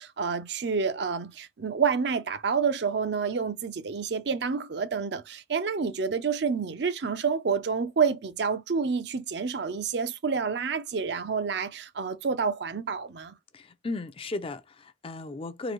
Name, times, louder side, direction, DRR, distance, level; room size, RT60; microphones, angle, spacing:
voice 1, 0.0-13.4, right 5 dB, 65° right, 0.5 m, -28 dB
voice 2, 13.5-15.7, left 2 dB, 30° left, 0.4 m, -35 dB
3.8 x 2.7 x 3.0 m
head